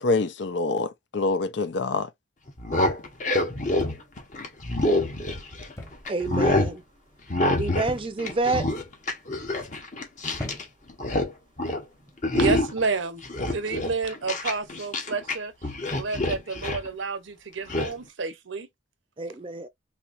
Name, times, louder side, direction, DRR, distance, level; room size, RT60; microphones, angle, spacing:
voice 1, 0.0-2.1, left 3 dB, 65° left, 0.6 m, -26 dB
sound 1, 2.5-5.7 6.1-6.7 7.3-7.9 8.2-10.6 10.9-11.3 11.6-11.8 12.2-12.8 13.2-15.3 15.6-16.9 17.7-17.9, left 1 dB, 40° left, 1.0 m, -26 dB
sound 2, 3.8-4.3 5.8-6.1 6.4-6.9 7.9-8.4 9.1-9.5 10.3-11.0 11.9-12.2, left 1 dB, 15° left, 1.0 m, -40 dB
voice 2, 6.1-6.8 7.6-8.6 19.2-19.7, right 3 dB, 25° right, 0.6 m, -28 dB
voice 3, 12.3-13.2 13.5-15.5 16.0-18.7, right 4 dB, 80° right, 0.8 m, -30 dB
4.3 x 2.8 x 2.5 m
head